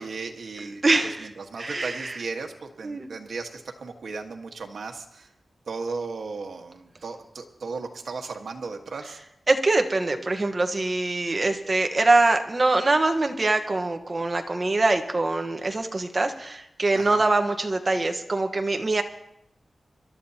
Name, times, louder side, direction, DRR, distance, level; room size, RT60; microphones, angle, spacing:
voice 1, 0.0-5.3 5.7-9.2 16.9-17.2, right 4 dB, 85° right, 3 dB, 1.5 m, -36 dB
voice 2, 0.6-1.3 1.6-2.2 2.8-3.1 9.5-19.0, right 2 dB, 35° right, 6 dB, 1.2 m, -23 dB
27.0 x 12.5 x 2.9 m, 0.79 s
wide cardioid pair, 100°, 0 cm